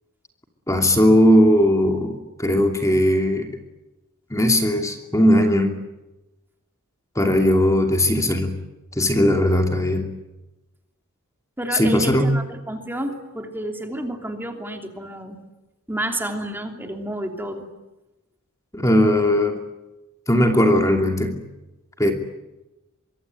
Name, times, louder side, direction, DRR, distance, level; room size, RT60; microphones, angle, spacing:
voice 1, 0.7-3.5 4.3-5.7 7.1-8.5 8.9-10.1 11.7-12.4 18.7-19.6 20.3-21.3 22.0-22.1, left 1 dB, 15° left, 4 dB, 2.8 m, -18 dB
voice 2, 11.6-15.4 15.9-17.6, right 1 dB, 10° right, 4 dB, 3.1 m, -30 dB
24.5 x 24.5 x 9.4 m, 1.0 s
head